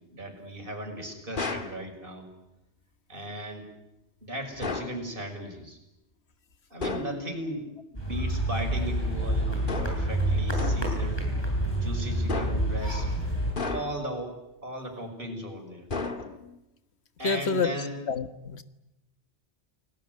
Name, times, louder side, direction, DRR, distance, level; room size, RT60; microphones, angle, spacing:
voice 1, 0.1-2.3 3.1-3.7 4.2-5.8 6.7-7.7 7.9-11.3 11.7-13.1 13.5-14.3 14.6-15.9 17.2-18.0, equal, 50° right, 3 dB, 6.2 m, -36 dB
sound 1, 1.4-1.8 4.6-5.0 6.8-7.2 9.7-10.1 10.6-11.0 12.3-12.8 13.6-14.1 15.9-16.6, left 3 dB, 50° left, 2.0 m, -33 dB
sound 2, 7.9-13.5, right 1 dB, 20° left, 7.2 m, -28 dB
voice 2, 17.2-17.7 18.1-18.6, left 5 dB, 70° left, 11 dB, 1.6 m, -27 dB
29.5 x 20.0 x 9.4 m, 0.93 s
omnidirectional pair, 1.2 m